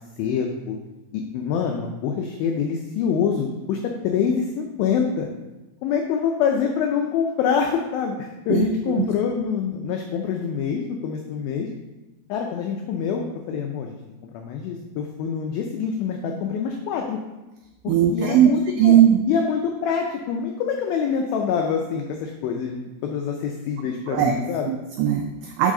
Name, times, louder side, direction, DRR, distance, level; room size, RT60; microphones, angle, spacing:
voice 1, 0.2-0.8 1.1-5.3 5.8-11.7 12.3-14.0 14.3-17.2 17.8-19.0 19.3-24.7, left 6 dB, 90° left, 2 dB, 2.0 m, -25 dB
voice 2, 8.5-9.0 17.9-18.5 18.8-19.2 24.1-24.3 24.6-25.7, right 10 dB, 85° right, 4 dB, 2.1 m, -19 dB
9.9 x 4.0 x 3.7 m, 1.1 s
omnidirectional pair, 4.9 m